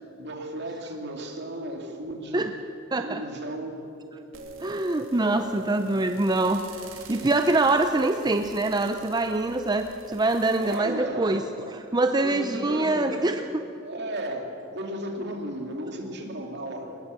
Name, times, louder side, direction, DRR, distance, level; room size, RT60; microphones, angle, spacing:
voice 1, 0.2-2.5 3.0-3.9 10.5-11.4 12.2-13.3 13.8-17.0, right 1 dB, 55° right, 3 dB, 2.8 m, -34 dB
voice 2, 2.9-3.2 4.6-6.6 7.1-11.4 11.7-13.4, right 2 dB, 20° right, 7 dB, 0.6 m, -24 dB
sound 1, 4.3-10.8, right 3 dB, 75° right, 2.8 m, -44 dB
21.0 x 20.0 x 6.7 m, 2.8 s
head